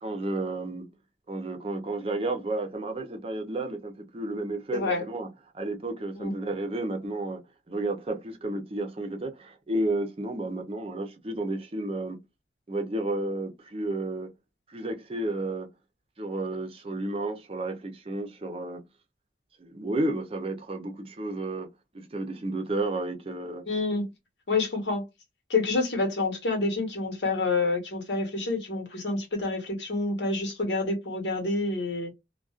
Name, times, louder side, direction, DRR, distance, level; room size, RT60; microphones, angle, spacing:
voice 1, 0.0-0.9 1.3-5.3 5.5-7.4 7.7-12.2 12.7-14.3 14.7-15.7 16.2-18.8 19.6-21.7 21.9-23.6, right 2 dB, 35° right, 0.5 m, -32 dB
voice 2, 4.7-5.0 6.2-6.3 23.7-24.1 24.5-25.0 25.5-32.1, left 3 dB, 85° left, 1.0 m, -28 dB
2.4 x 2.2 x 2.3 m
head